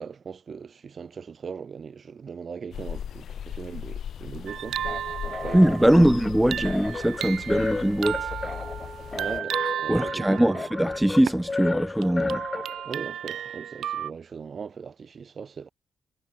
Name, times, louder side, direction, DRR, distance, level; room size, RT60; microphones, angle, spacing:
voice 1, 0.0-4.8 5.4-6.1 9.1-10.6 12.8-15.7, right 6 dB, 35° right, 2.3 m, -39 dB
sound 1, 2.7-9.4, left 9 dB, 60° left, 0.6 m, -38 dB
sound 2, 4.5-11.5 12.0-14.1, right 10 dB, 70° right, 0.3 m, -34 dB
sound 3, 4.8-13.1, left 3 dB, 20° left, 1.4 m, -34 dB
voice 2, 5.5-8.3 9.9-12.4, right 1 dB, 5° right, 0.4 m, -21 dB
wide cardioid pair, 170°, 0 cm